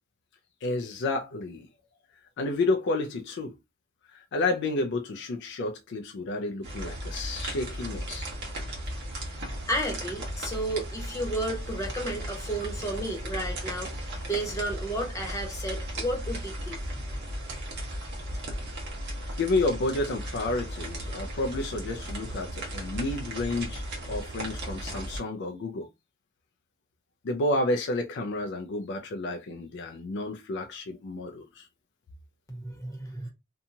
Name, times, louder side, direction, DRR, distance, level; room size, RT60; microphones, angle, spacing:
voice 1, 0.6-1.7 2.4-3.6 4.1-8.3 19.4-23.8 24.1-25.9 27.2-31.7, left 2 dB, 60° left, 0.4 m, -30 dB
sound 1, 6.6-25.2, right 1 dB, 55° right, 1.0 m, -36 dB
voice 2, 9.7-16.8 32.5-33.3, right 1 dB, 15° left, 1.0 m, -32 dB
2.8 x 2.3 x 2.6 m
head